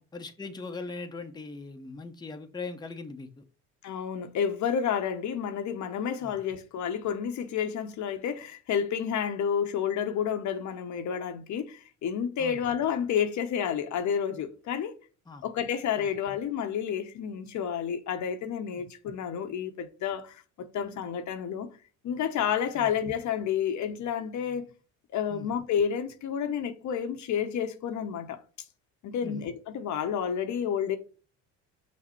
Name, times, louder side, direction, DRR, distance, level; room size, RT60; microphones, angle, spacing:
voice 1, 0.0-3.4 6.2-6.4 12.4-12.6 15.3-15.4 16.0-16.1 18.8-18.9 22.7-22.9 25.3-25.5 29.2-29.5, left 3 dB, 10° left, 0.8 m, -40 dB
voice 2, 3.8-14.9 15.4-20.4 20.7-21.7 22.0-24.6 25.1-28.4 29.0-31.0, left 8 dB, 55° left, 0.8 m, -30 dB
5.9 x 2.1 x 4.3 m
supercardioid pair, 75°, 35 cm